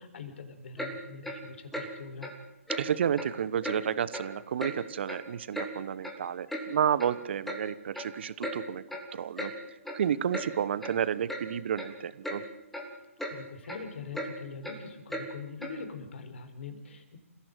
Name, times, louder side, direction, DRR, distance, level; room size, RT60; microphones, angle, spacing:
voice 1, 0.0-2.3 13.3-17.2, left 5 dB, 55° left, 8 dB, 4.2 m, -43 dB
Clock, 0.8-0.9 1.2-1.4 1.7-1.9 2.2-2.3 2.7-2.8 3.2-3.3 3.6-3.8 4.1-4.3 4.6-4.7 5.1-5.7 6.0-6.1 6.5-6.6 7.0-7.1 7.5-7.6 7.9-8.1 8.4-8.6 8.9-9.1 9.4-9.5 9.8-10.0 10.3-10.5 10.8-10.9 11.3-11.4 11.8-11.9 12.2-12.4 12.7-12.9 13.2-13.4 13.6-13.8 14.1-14.3 14.6-14.8 15.1-15.3 15.6-15.7, equal, ahead, 3.0 m, -36 dB
voice 2, 2.8-8.8 9.1-9.5 9.9-12.4, right 9 dB, 50° right, 17 dB, 1.2 m, -31 dB
28.0 x 16.5 x 7.8 m, 0.98 s
figure-of-eight pair, 135°, 8 cm